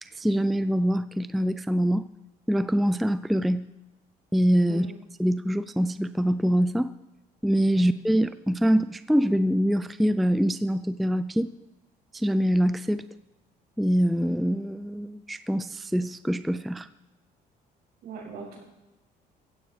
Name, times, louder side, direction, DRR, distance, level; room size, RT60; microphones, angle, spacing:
voice 1, 0.0-2.1 2.5-3.7 4.3-4.9 5.2-6.9 7.4-11.5 12.1-13.0 13.8-16.9, equal, ahead, 13 dB, 0.4 m, -24 dB
voice 2, 18.0-18.6, right 4 dB, 70° right, -9 dB, 6.1 m, -40 dB
16.5 x 15.5 x 3.4 m, 1.0 s
cardioid pair, 110°, 17 cm